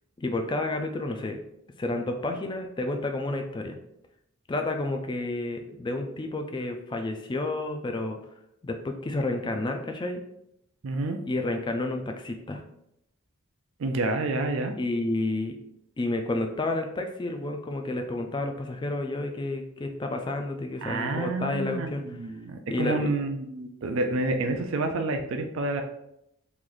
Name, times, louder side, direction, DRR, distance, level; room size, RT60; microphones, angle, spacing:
voice 1, 0.2-1.4 1.8-3.8 4.5-8.2 8.6-10.2 11.3-12.6 14.8-15.6 16.0-22.0 22.7-23.2, left 2 dB, 20° left, 4 dB, 0.3 m, -30 dB
voice 2, 10.8-11.2 13.8-14.7 20.8-25.8, right 2 dB, 65° right, 5 dB, 0.4 m, -29 dB
3.1 x 2.5 x 3.7 m, 0.79 s
head